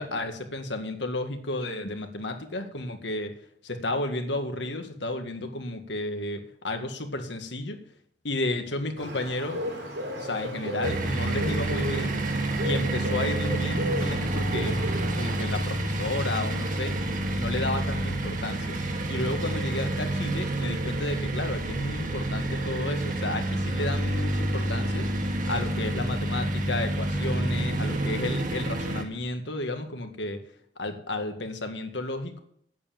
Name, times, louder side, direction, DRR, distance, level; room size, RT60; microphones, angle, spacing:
voice 1, 0.0-3.3 3.6-7.8 8.2-9.6 10.2-12.2 12.6-14.8 15.2-18.8 19.1-25.1 25.4-30.4 30.8-32.4, left 2 dB, 80° left, 5 dB, 1.8 m, -32 dB
Bird, 9.0-15.5, right 1 dB, 90° right, 4.4 m, -34 dB
sound 1, 10.8-29.0, right 1 dB, 50° right, 1.8 m, -28 dB
9.2 x 8.6 x 9.0 m, 0.65 s
head